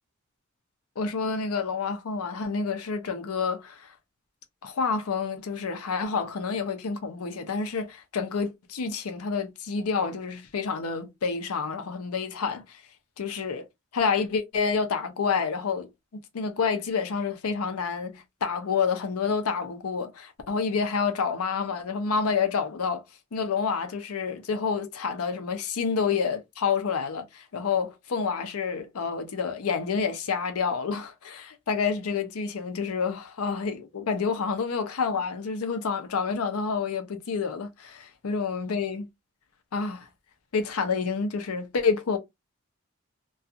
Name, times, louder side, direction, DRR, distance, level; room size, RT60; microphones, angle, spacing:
voice 1, 1.0-3.9 4.6-12.8 13.2-13.7 13.9-23.0 23.3-39.1 39.7-40.1 40.5-42.2, left 5 dB, 85° left, 0.5 m, -28 dB
2.4 x 2.3 x 2.6 m
head